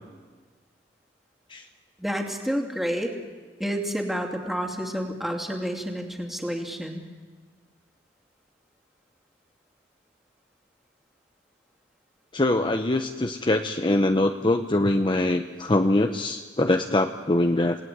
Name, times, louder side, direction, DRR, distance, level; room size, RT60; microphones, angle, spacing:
voice 1, 2.0-3.1 3.6-7.0, equal, ahead, 2 dB, 2.8 m, -29 dB
voice 2, 12.3-17.8, left 1 dB, 30° left, 6 dB, 0.8 m, -23 dB
28.5 x 18.0 x 9.5 m, 1.5 s
head